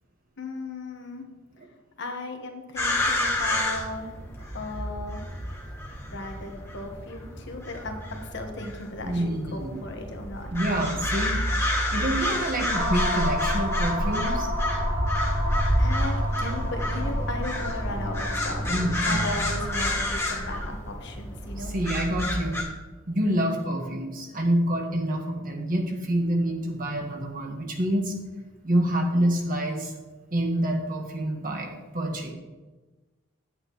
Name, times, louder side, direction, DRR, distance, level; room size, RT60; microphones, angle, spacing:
voice 1, 0.4-1.2 2.0-4.1 4.5-5.2 6.1-10.5 15.5-18.6 19.1-21.7, left 2 dB, 55° left, 3 dB, 1.4 m, -36 dB
sound 1, 2.8-22.6, left 1 dB, 10° left, 2.1 m, -29 dB
voice 2, 9.0-9.7 10.5-11.4 11.9-14.5 18.7-19.2 21.6-22.7 23.1-28.1 28.6-29.9 30.3-32.3, right 1 dB, 40° right, 2 dB, 1.5 m, -27 dB
sound 2, 12.7-20.3, equal, 75° right, 2.8 m, -31 dB
10.5 x 8.9 x 3.1 m, 1.2 s
head